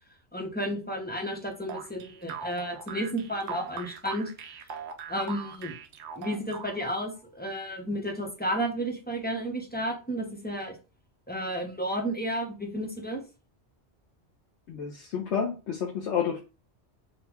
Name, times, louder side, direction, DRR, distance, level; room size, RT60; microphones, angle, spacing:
voice 1, 0.3-4.3 5.1-5.7 6.2-10.8 11.3-13.2, equal, 10° left, 1 dB, 0.7 m, -32 dB
sound 1, 1.7-7.0, right 6 dB, 85° right, 0.9 m, -40 dB
voice 2, 14.7-16.4, left 7 dB, 90° left, 0 dB, 1.0 m, -30 dB
3.9 x 2.2 x 4.5 m, 0.32 s
omnidirectional pair, 1.1 m